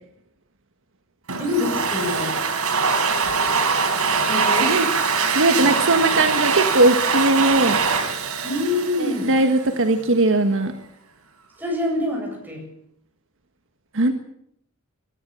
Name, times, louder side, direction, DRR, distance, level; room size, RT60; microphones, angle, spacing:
Domestic sounds home sounds, 1.3-9.7, right 5 dB, 85° right, 4.1 m, -22 dB
voice 1, 1.4-2.3 4.2-4.8 8.4-9.3 11.6-12.6, left 2 dB, 10° right, 0 dB, 7.6 m, -25 dB
voice 2, 4.6-4.9 5.3-7.8 9.0-10.7 13.9-14.1, right 2 dB, 60° right, 7 dB, 1.6 m, -19 dB
22.0 x 13.5 x 8.9 m, 0.74 s
head